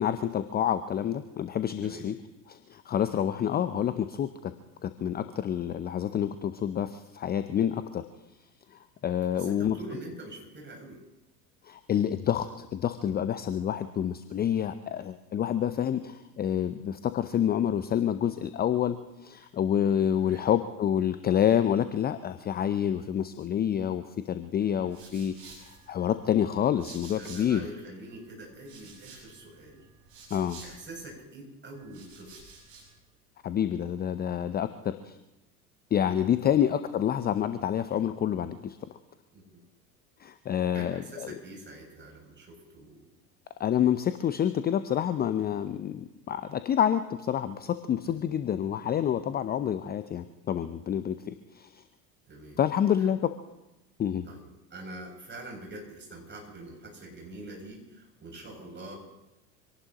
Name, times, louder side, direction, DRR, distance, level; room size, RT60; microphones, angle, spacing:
voice 1, 0.0-2.2 2.5-4.5 4.8-8.0 8.7-9.8 11.6-27.7 30.3-30.6 33.4-35.2 35.9-38.8 40.2-41.3 43.6-51.8 52.6-53.3 54.0-54.3, left 9 dB, 20° left, 12 dB, 0.6 m, -28 dB
voice 2, 9.3-11.0 12.4-12.5 20.2-20.5 27.2-29.9 30.6-32.4 36.5-36.6 39.3-39.6 40.7-43.1 48.0-48.3 52.3-52.6 53.0-53.1 54.3-58.9, right 2 dB, 25° right, 0 dB, 7.3 m, -45 dB
sound 1, 24.6-27.7 28.0-31.2 31.7-33.0, right 4 dB, 60° right, 6.7 m, -51 dB
26.0 x 18.0 x 3.0 m, 0.96 s
figure-of-eight pair, 80°, 47 cm